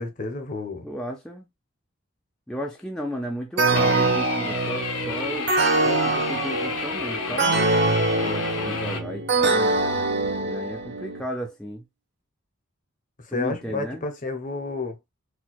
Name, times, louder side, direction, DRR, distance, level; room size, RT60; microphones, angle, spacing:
voice 1, 0.0-0.9 13.2-15.0, left 3 dB, 40° left, 0.7 m, -30 dB
voice 2, 0.8-1.5 2.5-5.5 5.8-7.5 8.2-9.7 10.4-11.8 13.3-14.1, equal, 5° left, 0.4 m, -34 dB
sound 1, 3.6-11.2, right 3 dB, 50° right, 0.6 m, -24 dB
sound 2, 3.8-9.0, left 4 dB, 85° left, 0.9 m, -31 dB
4.4 x 2.2 x 2.3 m
head